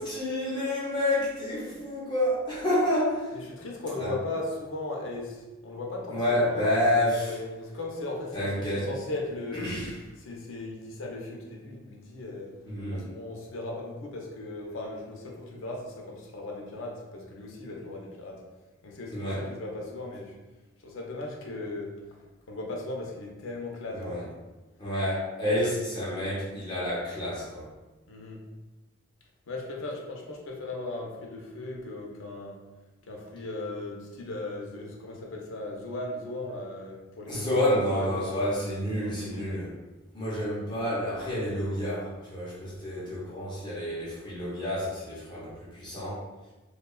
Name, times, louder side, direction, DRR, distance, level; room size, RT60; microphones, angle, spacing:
voice 1, 0.0-3.4 4.0-4.1 6.1-7.4 8.3-8.9 9.5-9.9 12.6-13.1 19.1-19.5 23.9-24.2 24.8-27.7 37.3-39.7 40.1-46.2, left 1 dB, 20° left, -8 dB, 0.7 m, -29 dB
voice 2, 3.3-6.8 7.3-9.8 10.2-12.5 12.9-18.4 18.8-20.3 20.8-21.9 22.5-24.3 25.6-25.7 28.1-28.4 29.5-32.6 33.1-37.6 37.9-38.3 39.0-39.6, left 2 dB, 75° left, -1 dB, 0.5 m, -37 dB
2.8 x 2.2 x 2.2 m, 1.1 s
head